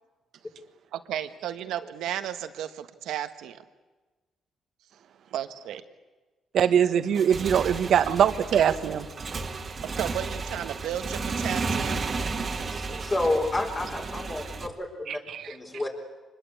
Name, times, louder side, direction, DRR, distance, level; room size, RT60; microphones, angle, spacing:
voice 1, 0.9-3.6 5.3-5.8 8.1-8.2 9.9-12.0, right 11 dB, 85° right, 9 dB, 1.4 m, -34 dB
voice 2, 6.5-9.1 15.1-15.6, right 8 dB, 65° right, 10 dB, 1.4 m, -22 dB
Motorcycle / Engine, 7.0-14.7, right 4 dB, 40° right, 1.9 m, -33 dB
voice 3, 12.8-15.2 15.5-15.9, left 2 dB, 30° left, 1 dB, 4.2 m, -29 dB
24.5 x 20.5 x 8.5 m, 1.2 s
cardioid pair, 90°, 0 cm